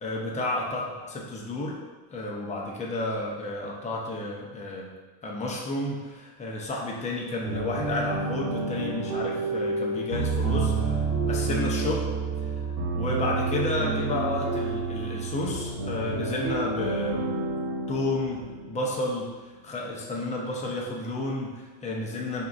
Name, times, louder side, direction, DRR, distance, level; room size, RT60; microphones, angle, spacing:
voice 1, 0.0-0.8 1.1-1.8 2.1-4.9 5.2-12.0 12.9-17.3 17.9-18.4 18.7-19.3 19.6-22.5, left 2 dB, 15° left, -2 dB, 0.7 m, -31 dB
sound 1, 7.4-19.2, right 3 dB, 75° right, 1.1 m, -29 dB
6.4 x 2.6 x 2.5 m, 1.3 s
supercardioid pair, 115°, 48 cm